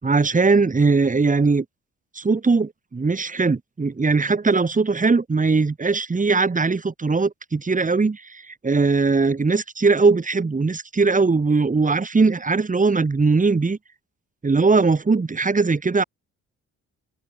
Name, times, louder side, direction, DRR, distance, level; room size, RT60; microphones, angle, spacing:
voice 1, 0.0-1.7 2.1-13.8 14.4-16.0, right 4 dB, 25° right, 5.2 m, -20 dB
open air
cardioid pair, 90°, 30 cm